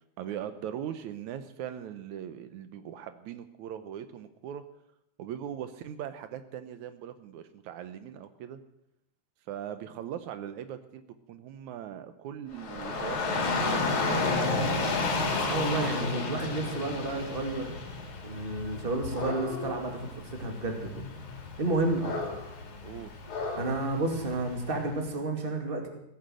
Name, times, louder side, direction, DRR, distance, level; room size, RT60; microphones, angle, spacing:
voice 1, 0.2-4.6 5.2-8.6 9.5-14.7 22.0-22.4 22.8-23.1, right 10 dB, 80° right, 11 dB, 2.2 m, -40 dB
Dog / Rain, 12.5-24.7, left 3 dB, 80° left, 3.9 m, -32 dB
voice 2, 15.4-17.8 18.2-21.1 21.6-22.1 23.5-25.9, right 2 dB, 20° right, 3 dB, 2.3 m, -31 dB
17.0 x 10.5 x 7.8 m, 0.80 s
omnidirectional pair, 3.4 m